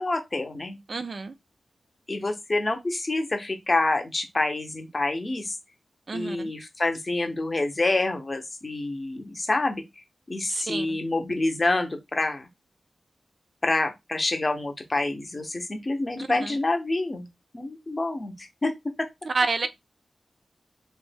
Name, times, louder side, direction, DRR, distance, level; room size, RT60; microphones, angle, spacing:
voice 1, 0.0-0.8 2.1-5.6 6.1-9.8 10.3-12.5 13.6-17.3 17.5-18.7 19.0-19.1, left 2 dB, 30° left, 0.7 m, -27 dB
voice 2, 0.9-1.3 6.1-6.5 10.5-11.0 16.2-16.6 19.2-19.7, right 4 dB, 50° right, 0.3 m, -29 dB
3.1 x 2.1 x 3.3 m
wide cardioid pair, 120°, 0 cm